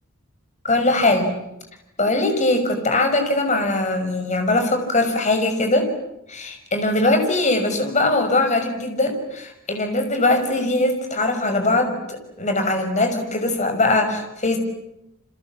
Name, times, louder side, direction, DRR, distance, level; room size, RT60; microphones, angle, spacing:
voice 1, 0.6-1.4 2.0-5.9 6.3-14.6, left 2 dB, 35° left, 6 dB, 5.8 m, -21 dB
29.5 x 26.5 x 7.5 m, 0.86 s
head